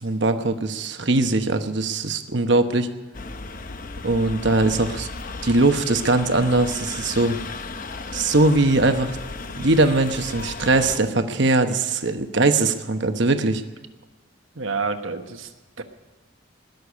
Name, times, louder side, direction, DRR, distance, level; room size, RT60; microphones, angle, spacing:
voice 1, 0.0-2.9 4.0-5.1 5.4-7.4 8.1-9.2 9.6-13.6, right 2 dB, 55° right, 8 dB, 1.0 m, -21 dB
sound 1, 3.1-11.0, left 3 dB, 40° left, 0.7 m, -35 dB
voice 2, 14.5-15.8, right 4 dB, 75° right, 6 dB, 1.3 m, -29 dB
20.0 x 6.8 x 9.9 m, 1.2 s
head